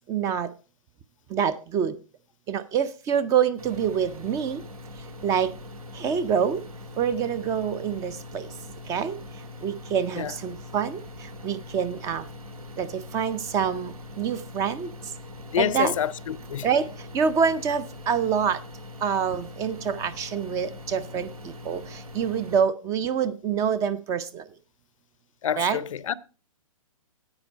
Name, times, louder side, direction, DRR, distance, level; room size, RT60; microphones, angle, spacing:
voice 1, 0.1-0.5 1.3-2.0 2.5-4.6 5.2-5.5 5.9-6.6 7.0-8.5 8.9-9.2 9.6-12.3 12.8-14.9 15.6-15.9 16.6-18.6 19.0-24.5 25.6-25.8, right 7 dB, 15° right, 0.5 m, -26 dB
sound 1, 3.6-22.6, left 2 dB, 85° right, 2.1 m, -42 dB
voice 2, 15.5-16.7 25.4-26.1, left 9 dB, 65° left, 0.6 m, -27 dB
9.8 x 8.3 x 5.0 m
hypercardioid pair, 140°, 18 cm